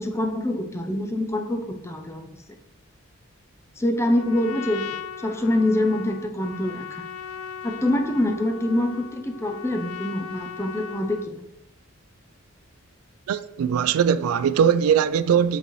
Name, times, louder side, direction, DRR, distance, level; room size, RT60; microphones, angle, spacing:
voice 1, 0.0-2.3 3.8-7.1 7.6-11.4, left 1 dB, 10° left, 0.5 m, -25 dB
Trumpet, 4.0-11.3, left 8 dB, 85° left, 0.3 m, -38 dB
voice 2, 13.3-15.6, right 8 dB, 90° right, 0.3 m, -20 dB
7.9 x 3.9 x 3.1 m
head